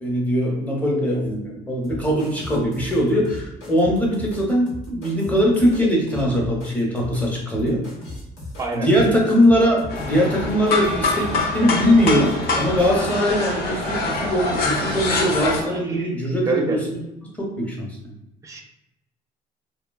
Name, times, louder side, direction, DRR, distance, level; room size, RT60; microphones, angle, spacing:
voice 1, 0.0-7.8 8.7-17.0 17.4-18.0, equal, 10° left, -2 dB, 0.8 m, -21 dB
sound 1, 1.8-13.0, left 1 dB, 85° left, 1.0 m, -37 dB
sound 2, 9.9-15.6, left 3 dB, 65° left, 0.6 m, -25 dB
sound 3, 11.6-15.8, right 4 dB, 80° right, 0.4 m, -37 dB
voice 2, 15.7-16.1 16.5-16.8 18.4-18.6, right 3 dB, 20° right, 2 dB, 0.5 m, -27 dB
3.2 x 2.2 x 2.2 m, 0.91 s
cardioid pair, 110°, 17 cm